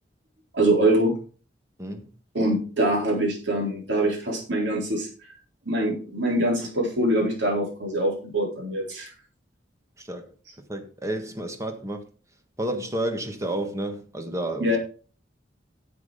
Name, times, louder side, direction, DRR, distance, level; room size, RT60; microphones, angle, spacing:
voice 1, 0.5-1.2 2.3-5.1 5.7-9.1 14.6-14.8, right 1 dB, 65° right, 4.0 m, -24 dB
voice 2, 1.8-2.1 10.0-10.3 10.7-12.1 12.6-14.8, right 1 dB, 15° right, 1.5 m, -31 dB
9.6 x 7.6 x 5.0 m
head